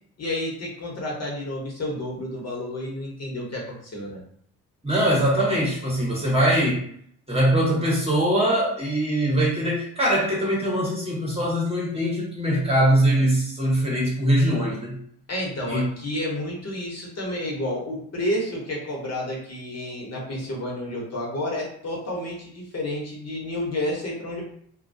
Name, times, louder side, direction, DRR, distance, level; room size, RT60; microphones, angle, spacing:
voice 1, 0.2-4.2 15.3-24.4, left 1 dB, 35° left, -3 dB, 1.0 m, -30 dB
voice 2, 4.8-6.8 7.3-15.0 15.7-15.9, right 1 dB, 15° right, -4 dB, 1.1 m, -22 dB
2.2 x 2.2 x 2.6 m, 0.63 s
hypercardioid pair, 60°, 44 cm